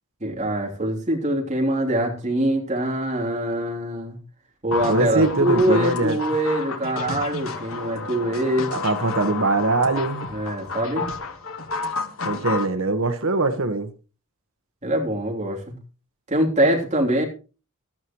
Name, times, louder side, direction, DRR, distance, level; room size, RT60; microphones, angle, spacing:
voice 1, 0.2-4.2 4.6-8.7 10.3-11.1 14.8-15.7 16.3-17.2, right 1 dB, 30° right, 0 dB, 3.3 m, -24 dB
sound 1, 4.7-12.7, left 4 dB, 65° left, 1.6 m, -31 dB
voice 2, 4.9-6.2 8.7-10.3 12.2-13.9, right 2 dB, 65° right, 9 dB, 1.4 m, -22 dB
15.0 x 13.0 x 3.1 m, 0.34 s
head